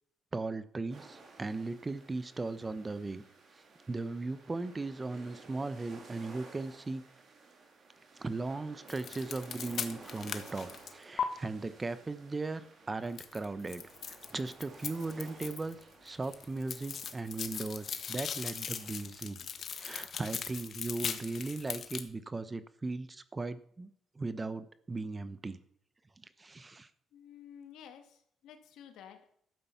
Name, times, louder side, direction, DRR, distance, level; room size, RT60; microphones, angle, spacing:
voice 1, 0.3-3.2 3.9-7.0 8.2-15.8 16.0-19.4 19.7-23.9 24.1-25.6 26.2-26.9, right 3 dB, 25° right, 14 dB, 1.0 m, -38 dB
sound 1, 0.9-19.1, right 4 dB, 55° right, 3.4 m, -55 dB
sound 2, 8.9-11.2 13.2-15.8 16.1-22.0, left 7 dB, 55° left, 1.4 m, -39 dB
voice 2, 27.1-29.3, left 9 dB, 85° left, 7 dB, 1.9 m, -52 dB
12.5 x 8.7 x 5.8 m, 0.66 s
cardioid pair, 90°, 0 cm